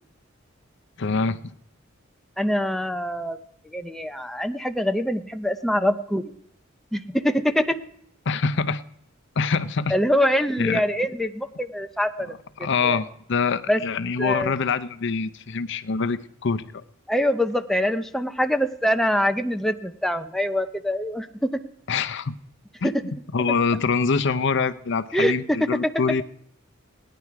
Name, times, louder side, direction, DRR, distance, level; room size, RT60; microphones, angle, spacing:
voice 1, 1.0-1.5 8.3-8.8 9.4-10.0 10.6-10.8 12.3-16.8 21.9-22.4 22.8-22.9 23.3-26.2, left 5 dB, 65° left, 12 dB, 0.6 m, -25 dB
voice 2, 2.4-3.4 3.6-6.2 6.9-7.8 9.9-12.3 12.8-13.0 13.7-13.8 14.2-14.6 17.1-21.6 22.8-22.9 25.1-25.3, equal, ahead, 7 dB, 0.6 m, -24 dB
18.0 x 10.0 x 4.7 m, 0.74 s
head